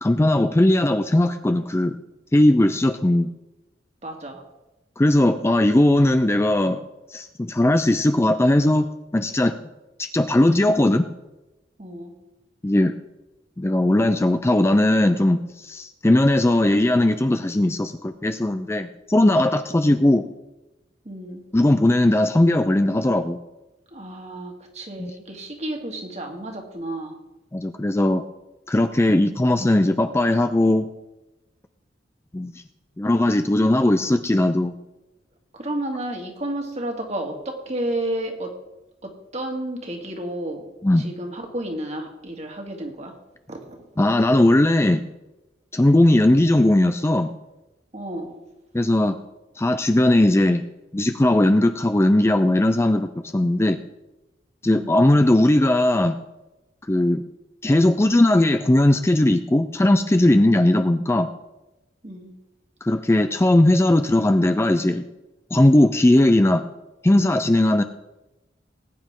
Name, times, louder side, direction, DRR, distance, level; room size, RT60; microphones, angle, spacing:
voice 1, 0.0-2.0 2.3-3.3 5.0-6.8 7.1-8.9 9.1-9.5 10.0-11.1 12.6-13.0 13.6-20.2 21.5-23.4 25.0-25.1 27.5-28.2 28.7-30.9 32.3-32.5 33.0-34.8 40.8-41.1 44.0-45.0 45.7-47.3 48.7-49.2 49.6-50.6 50.9-53.8 54.6-56.2 56.9-57.2 57.6-61.3 62.8-65.0 65.5-66.6 67.0-67.8, left 1 dB, 15° left, 8 dB, 0.4 m, -18 dB
voice 2, 4.0-4.4 11.8-12.1 21.0-21.4 23.9-27.2 35.5-38.5 39.0-40.7 41.0-43.1 43.5-43.8 47.9-48.4 54.7-55.0 62.0-62.3, right 1 dB, 40° right, 2 dB, 2.1 m, -31 dB
19.5 x 9.5 x 3.7 m, 1.0 s
head